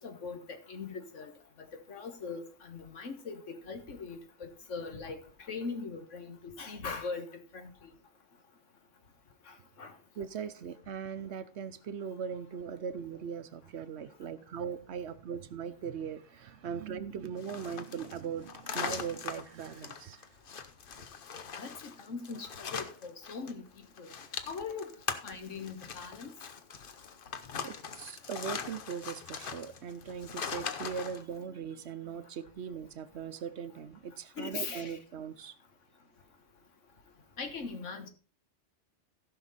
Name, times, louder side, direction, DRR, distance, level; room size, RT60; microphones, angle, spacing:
voice 1, 0.0-1.3 1.9-3.4 3.7-5.2 5.5-7.3 7.5-7.9 9.5-9.9 21.6-21.7 22.0-23.6 24.0-24.1 24.5-24.9 25.2-26.3 34.4-35.0 37.4-38.1, left 4 dB, 85° left, 1.7 m, -40 dB
voice 2, 10.2-20.3 27.6-35.5, right 7 dB, 65° right, 1.0 m, -40 dB
sound 1, 17.4-23.5 23.8-31.2, left 6 dB, 50° left, 1.0 m, -41 dB
15.0 x 5.9 x 4.1 m
omnidirectional pair, 1.2 m